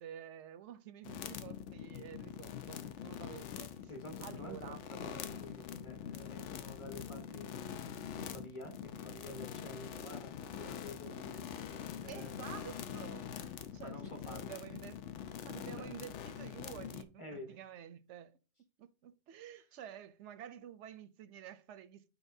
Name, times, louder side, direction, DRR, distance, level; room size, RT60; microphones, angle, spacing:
voice 1, 0.0-3.9 4.2-4.8 12.1-15.0 15.4-18.4 18.8-22.1, right 10 dB, 85° right, 0.9 m, -50 dB
sound 1, 1.0-17.0, left 9 dB, 90° left, 1.0 m, -44 dB
voice 2, 3.9-7.8 8.1-12.4 13.8-14.5 15.6-15.9 17.2-17.6, equal, 25° left, 1.6 m, -50 dB
11.5 x 4.7 x 2.7 m
omnidirectional pair, 1.2 m